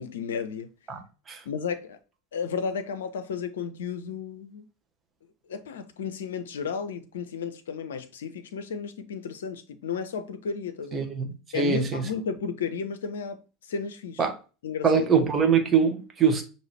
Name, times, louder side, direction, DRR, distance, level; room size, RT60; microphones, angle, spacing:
voice 1, 0.0-0.7 1.4-2.0 2.3-4.7 5.5-11.1 11.5-14.2 14.6-15.1, left 6 dB, 70° left, 0.6 m, -33 dB
voice 2, 0.9-1.4 10.9-11.3 11.5-12.0 14.2-14.3 14.8-16.4, right 6 dB, 25° right, 1.0 m, -23 dB
5.6 x 2.7 x 3.3 m
figure-of-eight pair, 75°, 0 cm